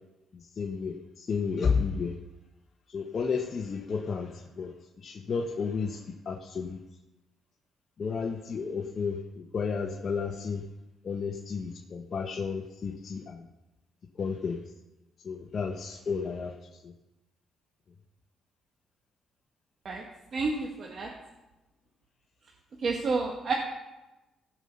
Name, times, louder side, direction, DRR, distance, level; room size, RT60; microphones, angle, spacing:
voice 1, 0.3-2.1 2.9-6.8 8.0-10.6 11.0-13.5 14.2-14.6 15.2-16.5 16.8-16.9, left 5 dB, 45° left, 1 dB, 1.1 m, -32 dB
voice 2, 20.3-21.1 22.8-23.5, right 3 dB, 50° right, 0 dB, 1.7 m, -29 dB
16.0 x 5.5 x 6.8 m, 1.0 s
cardioid pair, 90°, 0 cm